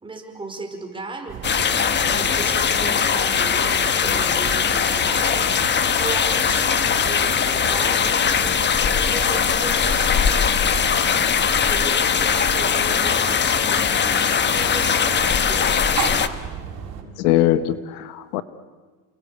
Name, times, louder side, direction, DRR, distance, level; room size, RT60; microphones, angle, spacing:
voice 1, 0.0-1.5 2.0-5.5 6.0-10.2 11.7-15.7, right 3 dB, 10° right, 5.1 m, -36 dB
sound 1, 1.3-17.0, right 7 dB, 40° right, 6.2 m, -34 dB
sound 2, 1.4-16.3, left 7 dB, 25° left, 1.3 m, -20 dB
voice 2, 17.2-18.4, left 13 dB, 75° left, 1.7 m, -21 dB
29.5 x 23.0 x 8.5 m
supercardioid pair, 125°, 45 cm